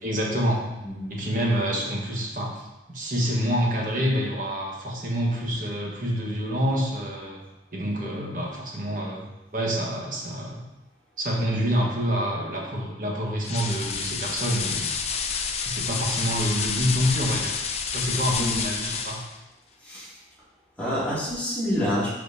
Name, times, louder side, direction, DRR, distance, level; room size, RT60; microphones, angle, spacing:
voice 1, 0.0-0.7 1.1-7.4 7.7-9.3 9.5-10.7 11.2-14.9 15.6-17.6 17.9-19.2, equal, 50° right, -2 dB, 1.4 m, -27 dB
voice 2, 0.8-1.2 18.3-18.6 19.8-20.1 20.8-22.1, equal, 10° left, -11 dB, 2.6 m, -27 dB
sound 1, 13.4-19.3, left 6 dB, 35° left, 0.5 m, -29 dB
12.0 x 4.2 x 2.8 m, 0.98 s
head